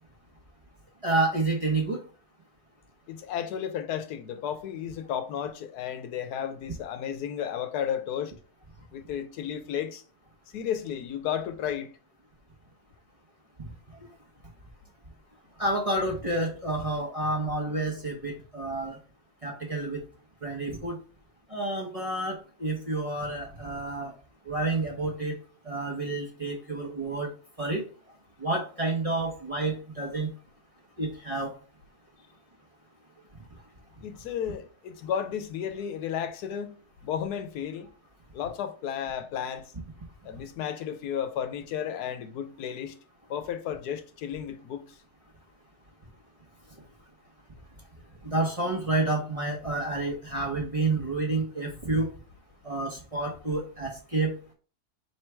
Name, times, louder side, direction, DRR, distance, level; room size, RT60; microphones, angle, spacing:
voice 1, 1.0-2.0 15.6-19.0 19.4-20.0 20.4-21.0 21.5-24.1 24.5-25.4 25.6-27.3 27.6-27.8 28.4-30.3 31.0-31.5 48.2-52.1 52.6-54.3, right 2 dB, 30° right, 0.8 m, -29 dB
voice 2, 3.1-8.3 8.9-10.0 10.5-11.9 34.0-36.7 37.0-37.9 38.3-39.7 40.2-42.9 43.3-44.8, left 9 dB, 90° left, 1.2 m, -33 dB
4.5 x 3.2 x 3.3 m
omnidirectional pair, 1.6 m